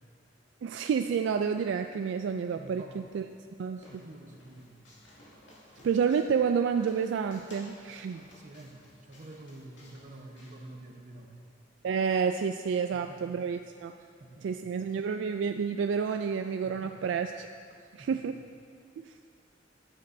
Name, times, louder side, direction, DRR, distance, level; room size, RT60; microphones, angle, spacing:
voice 1, 0.6-3.3 3.6-3.8 5.8-8.2 11.8-13.9 14.4-17.5 17.9-18.4 19.0-19.1, right 6 dB, 70° right, 7 dB, 0.3 m, -29 dB
voice 2, 2.5-3.0 3.8-4.8 8.3-11.4 12.9-13.4 14.0-14.7 16.6-17.1 17.7-18.4, right 1 dB, 40° right, 1 dB, 1.1 m, -49 dB
sound 1, 3.1-11.2, left 1 dB, 70° left, 2.4 m, -57 dB
12.5 x 10.5 x 2.7 m, 2.2 s
head